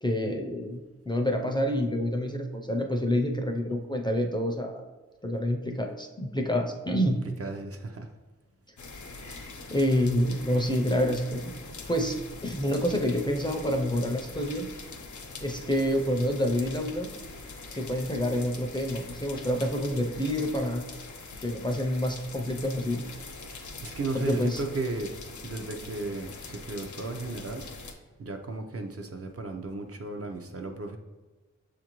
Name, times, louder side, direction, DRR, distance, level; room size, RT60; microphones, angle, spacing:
voice 1, 0.0-4.9 5.2-7.2 9.7-11.5 11.9-14.7 15.4-17.1 17.7-20.8 21.4-23.0 24.1-24.6, equal, 15° left, 2 dB, 0.4 m, -28 dB
voice 2, 7.4-8.1 23.4-25.1 25.4-27.7 28.2-31.0, right 3 dB, 55° right, 4 dB, 0.5 m, -35 dB
sound 1, 8.8-27.9, left 3 dB, 80° left, 0.6 m, -43 dB
6.5 x 2.5 x 2.9 m, 1.3 s
wide cardioid pair, 75°, 29 cm